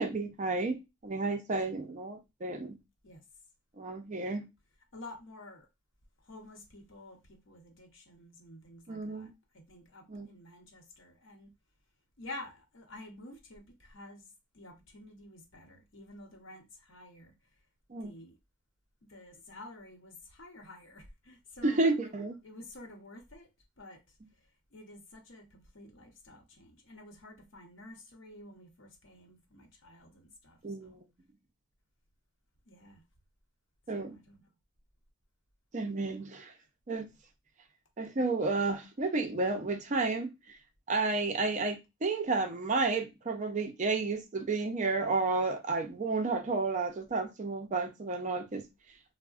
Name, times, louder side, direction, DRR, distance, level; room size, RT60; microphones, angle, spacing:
voice 1, 0.0-2.8 3.8-4.5 8.9-9.3 10.1-10.3 17.9-18.1 21.6-22.3 30.6-31.0 33.9-34.2 35.7-36.5 36.9-37.1 38.0-40.3 40.9-48.6, right 3 dB, 35° right, 0.4 m, -31 dB
voice 2, 1.5-1.9 3.0-3.2 4.9-5.7 6.2-11.5 12.2-14.3 14.5-17.3 18.0-18.3 19.1-22.1 22.4-23.5 23.8-24.0 24.7-31.0 32.7-33.0 33.9-34.4, left 2 dB, 60° left, 0.8 m, -50 dB
3.5 x 2.0 x 2.3 m
head